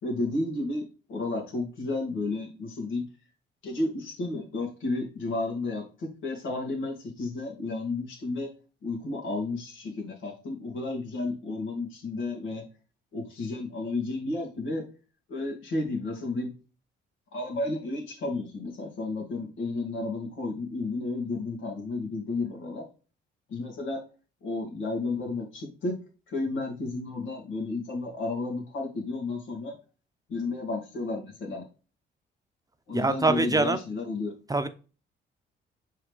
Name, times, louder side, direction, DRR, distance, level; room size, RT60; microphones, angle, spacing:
voice 1, 0.0-3.0 3.6-8.5 8.8-12.6 13.1-14.9 15.3-16.5 17.3-22.8 23.5-24.0 24.4-25.9 26.3-29.8 30.3-31.6 32.9-34.3, left 2 dB, 85° left, 2.9 m, -32 dB
voice 2, 32.9-33.8 34.5-34.7, right 3 dB, 20° right, 0.7 m, -24 dB
6.0 x 4.8 x 3.5 m
cardioid pair, 90°, 20 cm